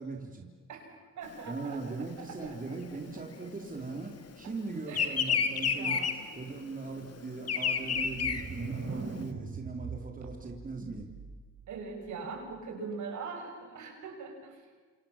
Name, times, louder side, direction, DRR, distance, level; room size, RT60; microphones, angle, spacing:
voice 1, 0.0-0.5 1.5-6.0 6.4-11.1, right 3 dB, 25° right, 2 dB, 3.7 m, -39 dB
voice 2, 0.7-3.5 4.9-5.4 5.7-6.1 11.7-14.6, right 4 dB, 75° right, 3 dB, 6.8 m, -42 dB
Bird vocalization bird call bird song, 1.3-4.2 4.5-9.2, left 6 dB, 55° left, 2.5 m, -31 dB
sound 1, 7.9-11.6, right 5 dB, 55° right, 4.1 m, -41 dB
29.0 x 27.5 x 7.4 m, 1.4 s
cardioid pair, 90°, 30 cm